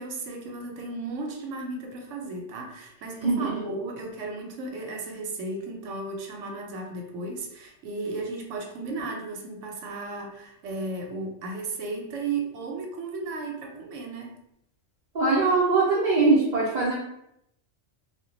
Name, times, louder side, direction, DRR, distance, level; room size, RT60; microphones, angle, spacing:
voice 1, 0.0-14.3, right 3 dB, 85° right, 2 dB, 0.9 m, -35 dB
voice 2, 15.1-16.9, right 3 dB, 50° right, -6 dB, 0.6 m, -21 dB
2.2 x 2.2 x 3.7 m, 0.78 s
omnidirectional pair, 1.3 m